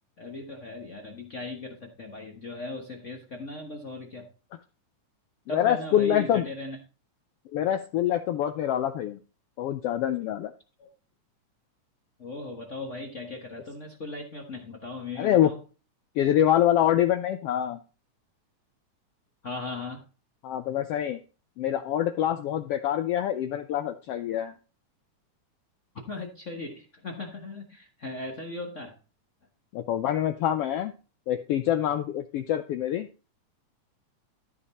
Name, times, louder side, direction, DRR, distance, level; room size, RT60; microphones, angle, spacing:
voice 1, 0.2-4.3 5.5-6.8 10.8-10.9 12.2-15.6 19.4-20.0 26.1-28.9, left 2 dB, 65° left, 1 dB, 0.7 m, -38 dB
voice 2, 5.5-6.5 7.5-9.2 9.6-10.5 15.2-15.6 16.2-17.8 20.4-21.2 21.6-24.5 29.7-30.9 31.3-33.1, left 11 dB, 90° left, 9 dB, 1.3 m, -25 dB
13.5 x 5.2 x 4.2 m, 0.34 s
omnidirectional pair, 3.4 m